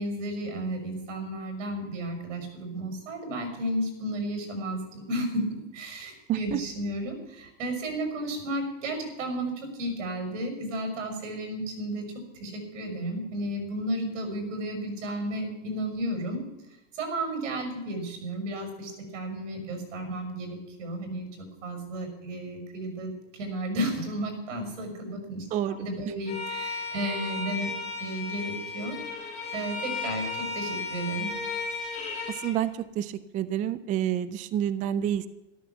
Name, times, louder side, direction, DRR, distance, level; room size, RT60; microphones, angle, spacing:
voice 1, 0.0-5.5 5.7-12.1 12.4-16.4 16.9-21.3 21.6-27.7 28.0-29.0 29.5-31.3, right 1 dB, 75° right, 5 dB, 6.0 m, -33 dB
voice 2, 6.3-6.6 25.5-25.8 32.3-35.3, right 11 dB, 20° right, 15 dB, 0.4 m, -29 dB
Bowed string instrument, 26.3-32.5, left 4 dB, 20° left, 5.8 m, -34 dB
13.0 x 13.0 x 7.2 m, 0.98 s
supercardioid pair, 140°, 38 cm